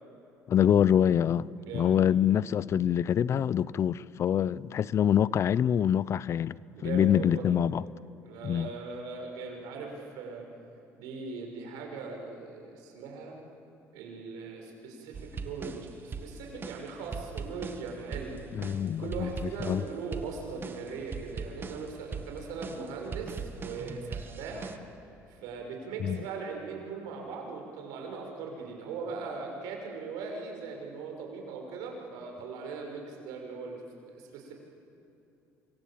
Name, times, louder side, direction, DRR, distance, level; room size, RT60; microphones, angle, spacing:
voice 1, 0.5-1.5 1.7-6.5 6.8-7.8 8.4-8.7 18.5-19.8 26.0-26.2, left 9 dB, 45° left, 0.5 m, -25 dB
voice 2, 1.6-2.2 6.8-7.4 8.2-10.5 11.0-13.4 13.9-18.4 19.0-24.7 25.3-33.8 34.1-34.5, right 4 dB, 85° right, 6.2 m, -39 dB
sound 1, 15.1-24.8, right 5 dB, 35° right, 1.7 m, -41 dB
27.0 x 23.5 x 8.8 m
supercardioid pair, 95°, 6 cm